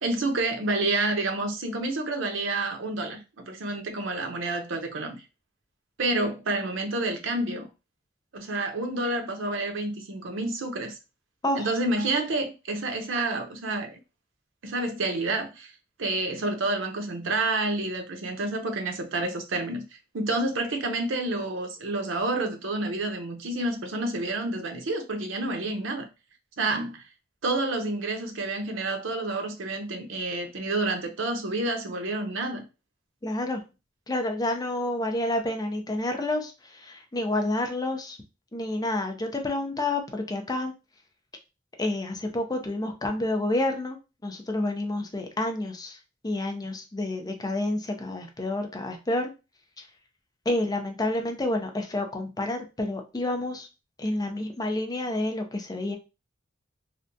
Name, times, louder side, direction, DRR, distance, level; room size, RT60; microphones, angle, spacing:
voice 1, 0.0-5.2 6.0-7.7 8.3-11.0 11.5-14.0 14.6-15.7 16.0-19.9 20.1-26.1 26.6-27.0 27.4-32.7, right 2 dB, 85° right, 0.7 m, -29 dB
voice 2, 33.2-33.6 34.1-38.2 38.5-40.7 41.8-44.0 44.2-46.0 46.2-49.3 50.5-53.7 54.0-56.0, left 1 dB, 20° left, 0.6 m, -29 dB
3.3 x 2.5 x 2.6 m
head